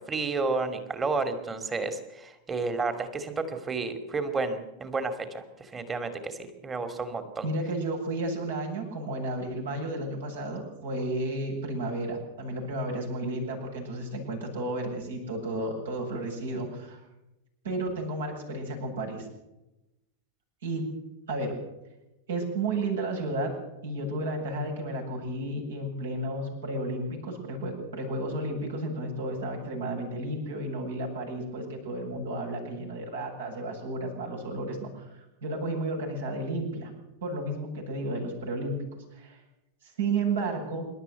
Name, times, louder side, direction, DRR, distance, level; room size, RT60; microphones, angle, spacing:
voice 1, 0.0-7.5, right 3 dB, 20° right, 9 dB, 2.6 m, -31 dB
voice 2, 7.4-17.0 17.6-19.3 20.6-20.9 21.3-21.6 22.3-35.1 35.4-36.9 37.2-38.8 39.1-39.4 39.8-40.9, right 2 dB, 65° right, 1 dB, 7.6 m, -32 dB
26.5 x 12.5 x 8.0 m, 0.94 s
figure-of-eight pair, 90°, 0 cm